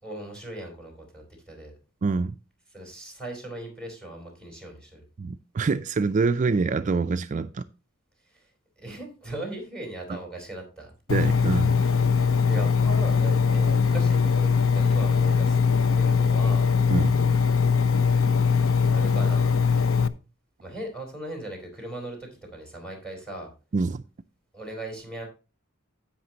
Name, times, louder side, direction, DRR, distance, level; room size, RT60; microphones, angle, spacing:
voice 1, 0.0-1.7 2.7-5.1 8.3-8.5 8.8-10.9 12.4-15.6 15.9-16.7 18.9-19.6 20.6-23.5 24.5-25.2, right 1 dB, 5° left, 4.2 m, -38 dB
voice 2, 2.0-2.4 5.2-7.6 11.1-11.8 16.9-17.2 23.7-24.0, right 4 dB, 40° right, 0.4 m, -25 dB
Engine, 11.1-20.1, left 5 dB, 90° left, 0.7 m, -21 dB
15.5 x 5.9 x 2.9 m
head